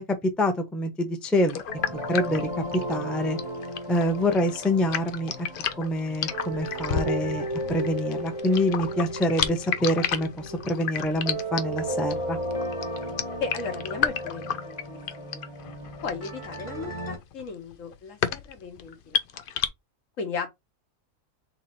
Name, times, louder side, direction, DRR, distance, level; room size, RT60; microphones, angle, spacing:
voice 1, 0.0-1.6 2.1-3.4 3.9-5.3 5.8-12.4, left 1 dB, ahead, 0.5 m, -26 dB
sound 1, 1.5-19.7, left 8 dB, 85° left, 0.4 m, -32 dB
sound 2, 1.7-17.2, right 1 dB, 25° left, 1.3 m, -34 dB
voice 2, 13.4-15.4 16.0-19.4 20.2-20.5, left 5 dB, 60° left, 1.3 m, -36 dB
3.9 x 3.1 x 4.1 m
omnidirectional pair, 1.6 m